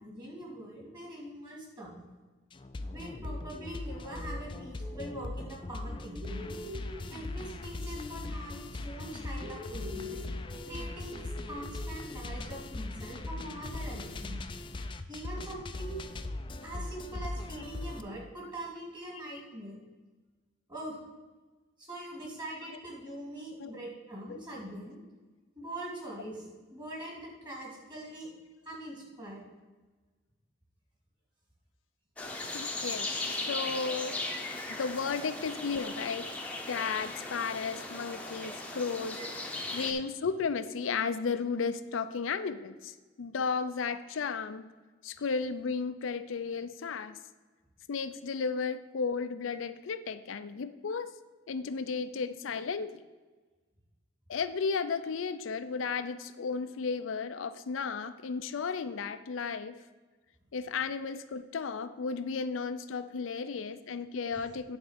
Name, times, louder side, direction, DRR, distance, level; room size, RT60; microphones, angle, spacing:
voice 1, 0.0-2.0 2.9-6.5 7.1-10.2 10.7-14.4 15.1-16.0 16.6-19.8 20.7-21.0 21.8-25.0 25.6-26.4 26.7-28.3 28.6-29.5 34.1-34.2 39.1-39.2 39.7-39.8, right 1 dB, 25° right, -3 dB, 2.5 m, -43 dB
sound 1, 2.5-18.0, left 2 dB, 25° left, 0.4 m, -39 dB
sound 2, 2.8-5.5 5.8-8.8 9.0-12.6, left 2 dB, 65° right, 2.4 m, -47 dB
sound 3, 32.2-39.9, left 2 dB, 5° left, 0.8 m, -37 dB
voice 2, 32.5-34.1 34.7-36.3 36.7-39.2 39.7-44.6 45.0-47.2 47.9-51.1 51.5-53.0 54.3-59.8 60.5-64.8, left 5 dB, 85° left, 11 dB, 0.5 m, -34 dB
9.7 x 4.0 x 6.6 m, 1.3 s
head